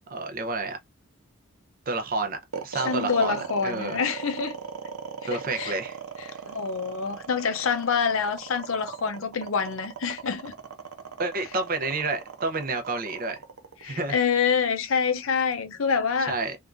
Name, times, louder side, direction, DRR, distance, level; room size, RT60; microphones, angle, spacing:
voice 1, 0.1-0.8 1.9-3.4 3.6-4.0 5.3-6.0 11.2-13.4 13.8-14.2 16.3-16.6, right 3 dB, 40° right, 0.6 m, -29 dB
sound 1, 2.5-14.8, right 6 dB, 75° right, 0.6 m, -38 dB
voice 2, 2.7-4.6 5.2-5.7 6.4-10.5 13.8-16.4, left 6 dB, 65° left, 0.5 m, -26 dB
3.5 x 2.4 x 2.5 m
head